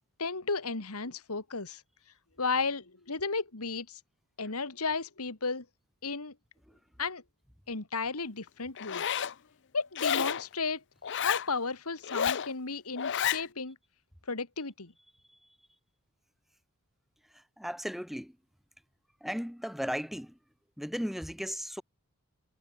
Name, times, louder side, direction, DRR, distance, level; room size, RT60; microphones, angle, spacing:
voice 1, 0.2-1.8 2.4-4.0 4.4-5.6 6.0-6.3 7.0-7.2 7.7-9.0 9.7-10.8 11.2-13.8 14.3-14.9, left 4 dB, 85° left, 2.3 m, -34 dB
Zipper (clothing), 8.8-9.3 9.9-10.4 11.0-11.5 12.0-12.5 13.0-13.4, left 8 dB, 55° left, 0.7 m, -30 dB
voice 2, 17.6-18.3 19.2-20.3 20.8-21.8, equal, ahead, 3.3 m, -35 dB
head